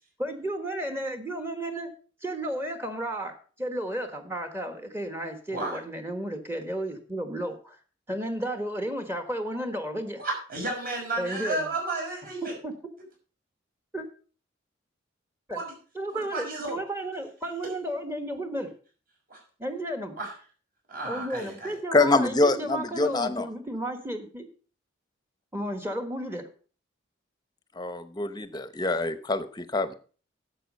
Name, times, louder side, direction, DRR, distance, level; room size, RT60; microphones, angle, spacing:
voice 1, 0.2-1.9 2.2-7.8 8.1-10.2 11.2-11.7 12.4-12.7 13.9-14.1 15.5-15.6 15.9-18.7 19.6-20.2 21.0-24.5 25.5-26.5, right 1 dB, 15° right, 1.3 m, -33 dB
voice 2, 10.2-12.5 15.5-15.8 16.1-16.8 19.3-19.4 20.2-20.3 20.9-21.8, right 2 dB, 50° right, 5.8 m, -32 dB
voice 3, 21.9-23.5 27.8-29.9, left 2 dB, 20° left, 0.8 m, -25 dB
11.0 x 7.5 x 5.3 m
head